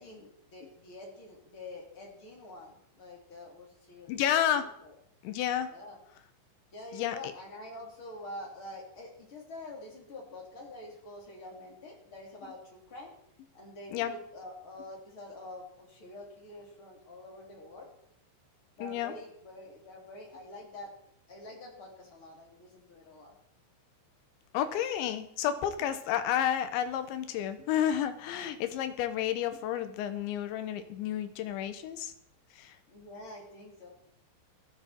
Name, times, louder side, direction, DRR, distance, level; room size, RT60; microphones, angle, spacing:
voice 1, 0.0-4.9 5.7-6.0 6.7-13.1 13.5-17.9 18.8-20.9 21.3-23.3 32.9-33.9, left 1 dB, 30° left, -1 dB, 3.9 m, -47 dB
voice 2, 4.1-4.7 5.2-5.7 6.9-7.2 13.9-14.1 18.8-19.1 24.5-32.1 32.5-32.8, left 10 dB, 75° left, 10 dB, 3.1 m, -31 dB
17.5 x 14.0 x 4.5 m, 0.73 s
omnidirectional pair, 5.7 m